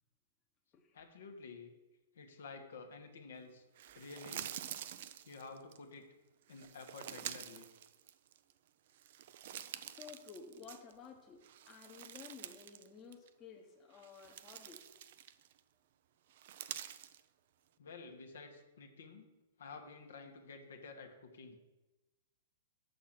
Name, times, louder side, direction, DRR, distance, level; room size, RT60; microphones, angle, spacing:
voice 1, 0.9-1.7 2.1-3.6 3.9-4.5 5.2-6.1 6.5-7.7 17.8-19.3 19.6-21.6, left 4 dB, 75° left, 4 dB, 1.3 m, -51 dB
sound 1, 3.8-5.8 6.5-8.5 8.9-11.1 11.4-12.9 13.1-13.3 13.9-15.6 16.3-17.2, right 11 dB, 60° right, 0.5 m, -48 dB
voice 2, 9.9-14.9, left 6 dB, 30° left, 2 dB, 1.1 m, -54 dB
7.3 x 6.5 x 6.0 m, 1.1 s
hypercardioid pair, 110°, 0 cm